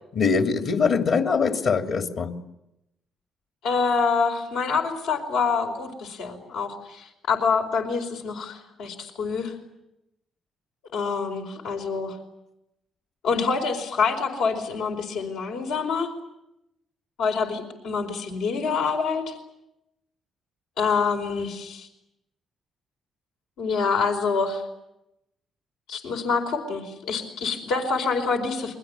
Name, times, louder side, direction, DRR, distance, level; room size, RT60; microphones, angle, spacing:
voice 1, 0.1-2.3, left 5 dB, 65° left, 4 dB, 3.1 m, -22 dB
voice 2, 3.6-9.5 10.9-12.2 13.2-16.1 17.2-19.4 20.8-21.9 23.6-24.6 25.9-28.8, left 5 dB, 90° left, 3 dB, 4.7 m, -26 dB
29.0 x 23.5 x 8.6 m, 0.86 s
cardioid pair, 90°, 0 cm